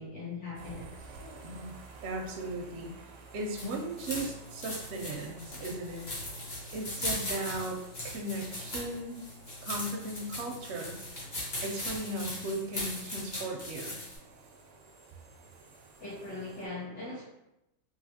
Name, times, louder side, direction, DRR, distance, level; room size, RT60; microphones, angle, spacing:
voice 1, 0.0-1.4 16.0-17.3, left 3 dB, 75° left, -10 dB, 1.3 m, -41 dB
sound 1, 0.5-16.7, right 4 dB, 90° right, 1.0 m, -53 dB
voice 2, 1.4-1.8 2.0-6.0 6.7-7.8 8.0-9.2 9.6-11.0 11.6-14.0, right 2 dB, 65° right, 1 dB, 0.7 m, -37 dB
sound 2, 3.4-14.2, left 1 dB, 35° left, 0.9 m, -39 dB
3.1 x 2.5 x 2.7 m, 0.87 s
omnidirectional pair, 1.4 m